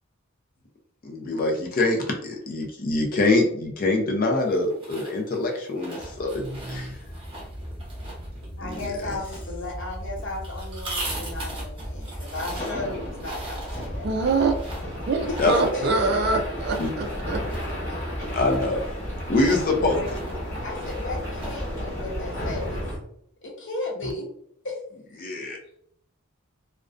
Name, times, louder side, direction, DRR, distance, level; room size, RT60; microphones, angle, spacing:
voice 1, 1.0-6.4 6.7-7.0 8.6-8.8 15.4-15.5 16.8-16.9 18.3-18.9 19.3-20.0 25.2-25.6, left 2 dB, 40° left, 1 dB, 0.4 m, -24 dB
sound 1, 4.4-21.8, right 2 dB, 25° right, 0.8 m, -40 dB
sound 2, 6.0-23.0, equal, 15° left, 0.9 m, -34 dB
voice 2, 6.4-6.9 14.0-14.5 15.1-17.4, right 3 dB, 45° right, 4 dB, 0.3 m, -25 dB
voice 3, 8.6-14.5 15.3-16.2 19.5-20.1 20.6-22.8 23.4-24.3 24.6-24.8, left 2 dB, 55° left, -3 dB, 0.8 m, -35 dB
2.4 x 2.1 x 2.4 m, 0.70 s
head